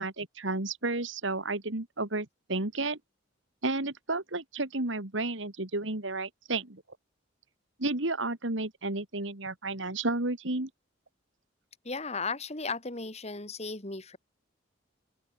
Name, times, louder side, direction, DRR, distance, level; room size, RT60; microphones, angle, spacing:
voice 1, 0.0-3.0 3.6-6.8 7.8-10.7, right 2 dB, 65° right, 2.4 m, -32 dB
voice 2, 11.8-14.2, left 4 dB, 35° left, 2.6 m, -35 dB
open air
head